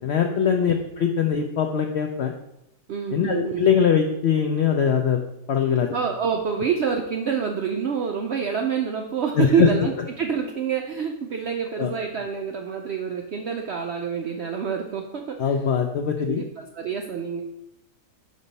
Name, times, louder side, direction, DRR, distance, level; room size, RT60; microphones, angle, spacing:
voice 1, 0.0-2.3 3.1-5.2 5.5-5.9 9.4-9.7 11.8-11.9 15.4-16.4, left 7 dB, 75° left, 4 dB, 0.6 m, -22 dB
voice 2, 2.9-3.7 5.9-15.5 16.2-17.4, right 6 dB, 70° right, 3 dB, 0.6 m, -27 dB
5.4 x 5.2 x 4.0 m, 0.83 s
omnidirectional pair, 1.7 m